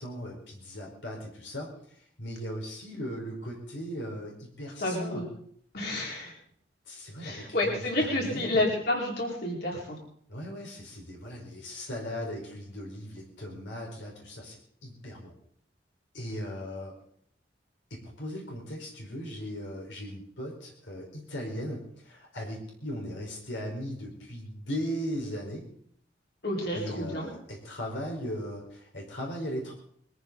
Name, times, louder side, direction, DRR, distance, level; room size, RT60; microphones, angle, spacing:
voice 1, 0.0-1.7 2.2-5.3 6.9-8.6 10.3-15.3 16.1-16.9 17.9-25.6 26.7-29.8, equal, 90° left, -1 dB, 4.7 m, -38 dB
voice 2, 4.8-5.2 5.7-6.3 7.2-10.0 26.4-27.3, left 1 dB, 60° left, -2 dB, 5.0 m, -29 dB
22.5 x 14.0 x 4.1 m, 0.63 s
head